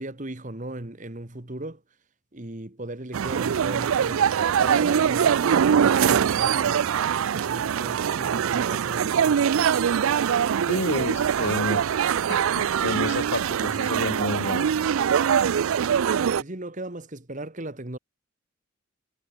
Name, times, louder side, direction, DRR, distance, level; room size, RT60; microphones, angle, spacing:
voice 1, 0.0-1.8 2.3-7.0 7.3-9.5 16.4-18.0, right 1 dB, 35° right, 1.6 m, -37 dB
sound 1, 3.1-16.4, right 8 dB, 75° right, 0.4 m, -23 dB
voice 2, 10.7-11.8 12.3-14.7, left 2 dB, 65° left, 2.0 m, -30 dB
head